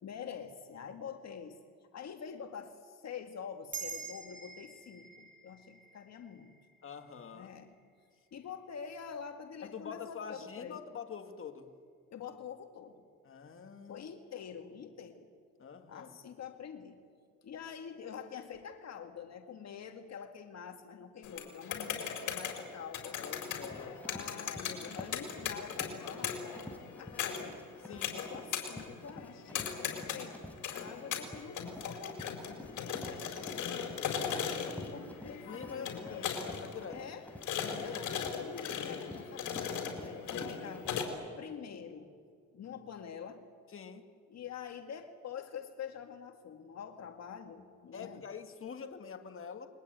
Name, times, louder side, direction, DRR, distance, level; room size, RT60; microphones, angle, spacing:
voice 1, 0.0-1.6 1.9-6.6 7.3-7.7 8.3-10.8 12.1-13.1 13.9-15.3 15.9-17.0 17.4-23.2 24.0-27.6 28.1-30.4 30.7-33.5 34.8-35.9 36.2-36.3 36.9-37.3 37.8-41.0 41.4-42.1 42.5-43.4 44.3-48.2, left 7 dB, 60° left, 5 dB, 2.0 m, -46 dB
sound 1, 3.7-8.4, right 6 dB, 25° right, 5.7 m, -47 dB
voice 2, 6.8-7.5 9.6-11.7 13.2-14.1 15.6-16.1 23.2-24.0 27.9-28.2 29.5-30.0 33.5-34.0 35.4-37.0 37.6-37.8 43.7-44.1 47.9-49.7, left 6 dB, 45° left, 5 dB, 2.2 m, -46 dB
sound 2, 21.2-41.0, left 7 dB, 80° left, 4.5 m, -39 dB
Run, 23.6-41.0, left 1 dB, 5° left, 4.2 m, -50 dB
29.0 x 22.0 x 9.2 m, 2.1 s
cardioid pair, 90°, 30 cm